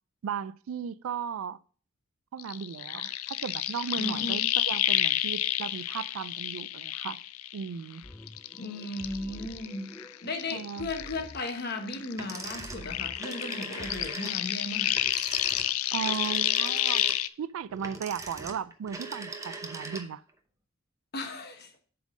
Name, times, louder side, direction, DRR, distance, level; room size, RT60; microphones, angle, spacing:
voice 1, 0.2-1.6 2.3-7.2 7.5-8.0 10.5-10.9 15.9-17.0 17.4-20.2, right 7 dB, 70° right, 0.3 m, -36 dB
sound 1, 2.4-7.9 8.3-11.6 11.9-17.3, left 13 dB, 80° left, 0.4 m, -30 dB
voice 2, 4.0-4.4 8.5-15.0 21.1-21.7, left 2 dB, 50° left, 1.1 m, -36 dB
sound 2, 8.0-14.1, left 1 dB, 10° left, 0.3 m, -48 dB
sound 3, 12.1-20.3, right 3 dB, 15° right, 0.7 m, -41 dB
7.6 x 3.7 x 6.2 m
head